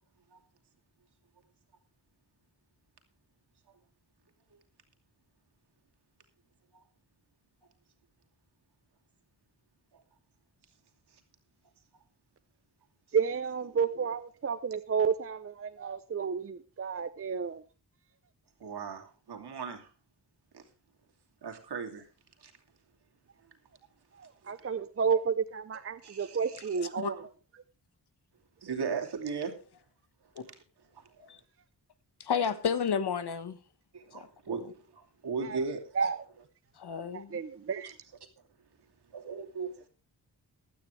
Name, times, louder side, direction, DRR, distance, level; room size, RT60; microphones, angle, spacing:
voice 1, 13.1-17.6 24.1-27.2 35.4-35.6 35.9-36.2 37.1-37.9, right 6 dB, 35° right, 0.6 m, -31 dB
voice 2, 18.6-19.9 20.5-20.6 21.4-22.1 22.4-22.5 26.0-26.8 28.6-29.5 32.3-32.4 33.9-35.8 39.1-39.9, right 5 dB, 75° right, 2.8 m, -37 dB
voice 3, 32.2-33.6 34.1-34.7 36.8-37.4, left 7 dB, 75° left, 1.3 m, -32 dB
16.0 x 12.5 x 3.2 m
wide cardioid pair, 165°, 40 cm